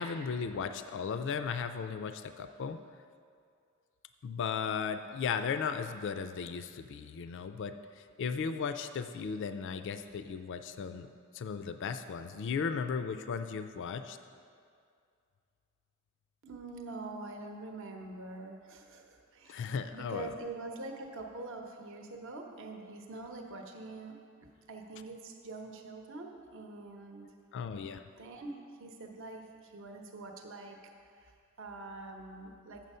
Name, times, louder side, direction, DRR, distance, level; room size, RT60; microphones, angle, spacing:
voice 1, 0.0-2.8 4.2-11.1 11.3-14.2 19.5-20.3 27.5-28.0, left 6 dB, 55° left, 10 dB, 0.4 m, -36 dB
voice 2, 16.4-19.6 19.9-24.2 24.7-27.3 28.2-30.8 31.1-32.8, right 3 dB, 65° right, 3 dB, 0.9 m, -45 dB
7.6 x 7.3 x 5.4 m, 2.3 s
head